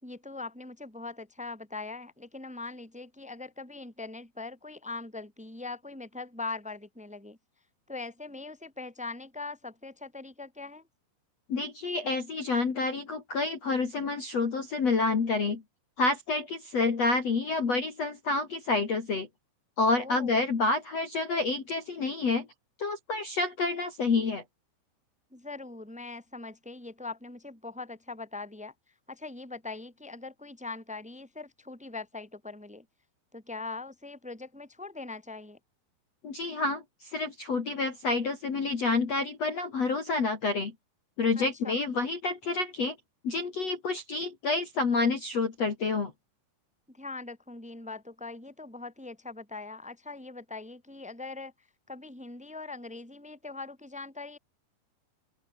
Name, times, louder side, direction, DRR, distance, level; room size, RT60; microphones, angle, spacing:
voice 1, 0.0-7.4 7.9-10.9 20.0-20.5 25.3-28.7 29.1-32.9 33.3-35.6 41.4-41.7 46.9-51.5 51.9-54.4, left 3 dB, ahead, 3.6 m, -41 dB
voice 2, 11.5-15.6 16.0-19.3 19.8-22.5 22.8-24.4 36.2-40.7 41.2-42.9 43.2-46.1, left 3 dB, 40° left, 3.3 m, -28 dB
open air
omnidirectional pair, 5.5 m